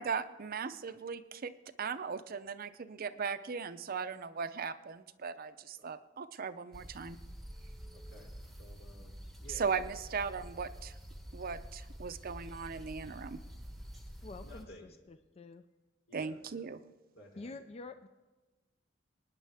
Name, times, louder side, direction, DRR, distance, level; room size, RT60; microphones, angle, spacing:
voice 1, 0.0-1.5 1.8-7.2 9.5-10.9 11.3-13.4 16.1-16.8, right 5 dB, 50° right, 12 dB, 0.6 m, -38 dB
sound 1, 6.7-14.7, equal, ahead, 1.0 m, -48 dB
voice 2, 7.9-8.3 8.6-9.8 14.2-14.9 16.1-16.4 17.2-17.5, left 1 dB, 80° left, 0 dB, 3.3 m, -55 dB
voice 3, 14.2-15.6 17.4-18.1, left 3 dB, 35° left, 10 dB, 0.4 m, -48 dB
24.0 x 9.9 x 3.5 m, 1.2 s
head